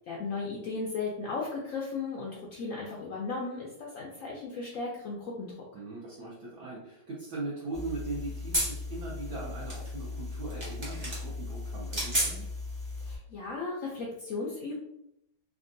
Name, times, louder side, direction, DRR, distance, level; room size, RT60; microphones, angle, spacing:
voice 1, 0.1-5.5 13.0-14.8, left 4 dB, 80° left, -3 dB, 0.7 m, -36 dB
voice 2, 5.7-12.5, right 2 dB, 65° right, -6 dB, 1.1 m, -40 dB
sound 1, 7.7-13.2, equal, 35° right, 0.4 m, -34 dB
3.5 x 2.2 x 2.5 m, 0.79 s
omnidirectional pair, 2.0 m